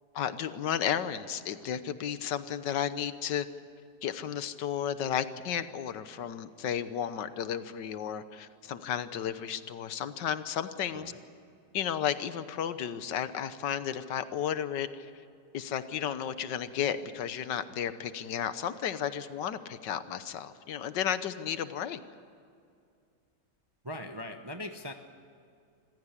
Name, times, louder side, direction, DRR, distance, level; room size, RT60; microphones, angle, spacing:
voice 1, 0.1-3.5 4.0-11.1 11.7-15.1 15.5-22.0, left 9 dB, 85° left, 12 dB, 1.6 m, -33 dB
voice 2, 10.9-11.2 23.8-24.9, left 1 dB, 20° right, 6 dB, 0.8 m, -40 dB
25.5 x 16.0 x 9.9 m, 2.4 s
omnidirectional pair, 1.8 m